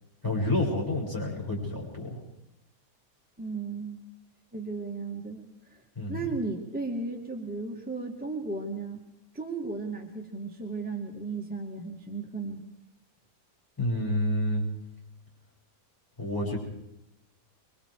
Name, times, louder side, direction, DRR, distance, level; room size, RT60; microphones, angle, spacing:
voice 1, 0.2-2.2 6.0-6.2 13.8-14.6 16.2-16.6, left 1 dB, 10° left, -3 dB, 6.4 m, -29 dB
voice 2, 3.4-4.0 4.5-5.8 6.1-9.0 9.3-12.6, right 3 dB, 5° right, 0 dB, 2.2 m, -35 dB
27.0 x 23.0 x 4.9 m, 0.85 s
omnidirectional pair, 1.8 m